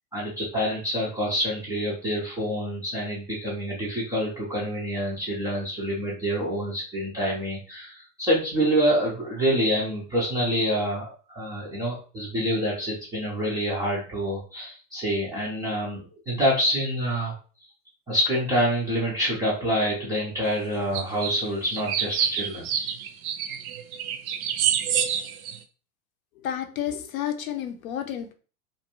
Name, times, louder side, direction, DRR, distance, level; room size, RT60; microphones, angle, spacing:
voice 1, 0.1-17.3 18.1-22.9, equal, 10° right, -7 dB, 0.3 m, -27 dB
sound 1, 20.9-21.3 21.7-25.6, right 9 dB, 70° right, 0.5 m, -27 dB
voice 2, 26.4-28.3, left 10 dB, 60° left, 6 dB, 0.6 m, -31 dB
2.5 x 2.2 x 2.8 m, 0.38 s
hypercardioid pair, 110°, 46 cm